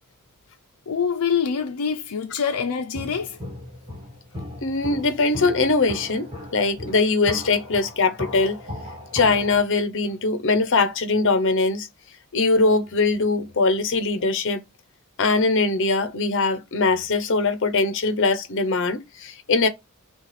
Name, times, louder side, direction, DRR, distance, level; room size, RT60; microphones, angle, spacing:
voice 1, 0.9-3.4, left 6 dB, 85° left, 0.5 m, -25 dB
Walk footsteps, 2.9-9.6, left 1 dB, 20° right, 1.9 m, -37 dB
voice 2, 4.6-8.6 9.1-11.9 12.3-14.6 15.2-19.7, left 3 dB, 55° left, 0.8 m, -21 dB
6.2 x 2.4 x 3.2 m
head